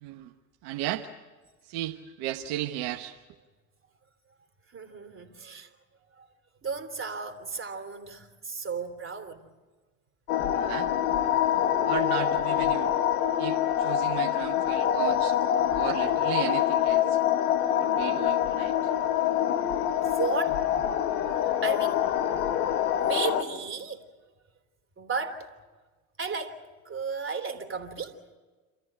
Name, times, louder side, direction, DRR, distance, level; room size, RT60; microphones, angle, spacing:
voice 1, 0.0-0.3 0.6-1.1 1.7-3.2 10.6-10.9 11.8-12.9 13.4-15.4 15.7-17.2 17.8-18.7, right 13 dB, 65° right, 1.2 m, -34 dB
voice 2, 4.7-5.7 6.2-6.3 6.6-9.5 20.0-20.6 21.4-22.1 23.0-24.1 25.0-25.5 26.2-28.2, right 5 dB, 30° right, 3.2 m, -34 dB
sound 1, 10.3-23.4, left 10 dB, 80° left, 1.4 m, -25 dB
27.5 x 14.0 x 10.0 m
hypercardioid pair, 80°, 43 cm